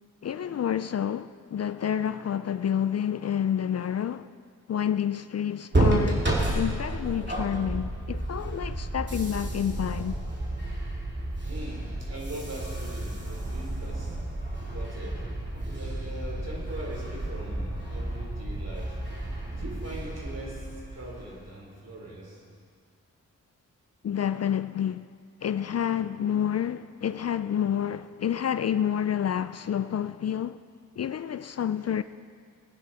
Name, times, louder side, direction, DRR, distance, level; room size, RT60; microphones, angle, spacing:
voice 1, 0.2-4.3 4.7-10.2 24.0-25.1 25.4-30.6 31.0-32.0, left 9 dB, 50° left, 0.4 m, -29 dB
sound 1, 5.7-21.4, right 1 dB, 30° right, 2.9 m, -31 dB
voice 2, 11.4-14.2 14.7-15.2 15.7-19.0 19.5-22.4, right 1 dB, 50° right, 4.3 m, -41 dB
20.0 x 9.7 x 4.3 m
cardioid pair, 50°, 33 cm